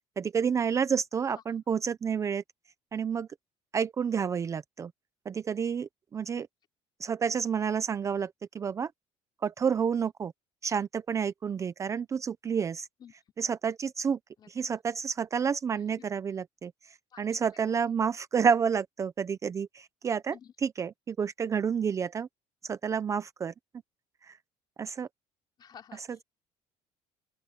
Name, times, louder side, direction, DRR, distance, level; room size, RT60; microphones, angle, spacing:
voice 1, 0.2-2.4 2.9-3.3 3.7-4.9 5.3-6.5 7.0-8.9 9.4-10.3 10.6-12.9 13.4-14.2 14.6-16.7 17.2-20.3 20.6-22.3 22.6-23.5 24.2-24.4 24.8-25.1, right 6 dB, 25° right, 0.6 m, -29 dB
voice 2, 15.7-16.1 17.1-17.4 17.6-18.0 20.3-20.5 25.6-26.2, left 8 dB, 35° left, 3.9 m, -53 dB
open air
cardioid pair, 155°, 12 cm